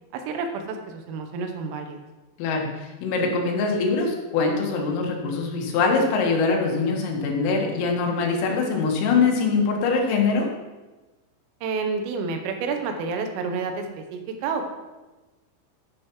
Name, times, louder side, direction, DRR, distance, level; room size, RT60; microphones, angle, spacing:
voice 1, 0.1-2.0 11.6-14.7, right 4 dB, 90° right, 5 dB, 3.7 m, -29 dB
voice 2, 2.4-10.5, left 4 dB, 90° left, 1 dB, 4.2 m, -23 dB
10.5 x 10.0 x 3.1 m, 1.2 s
omnidirectional pair, 5.8 m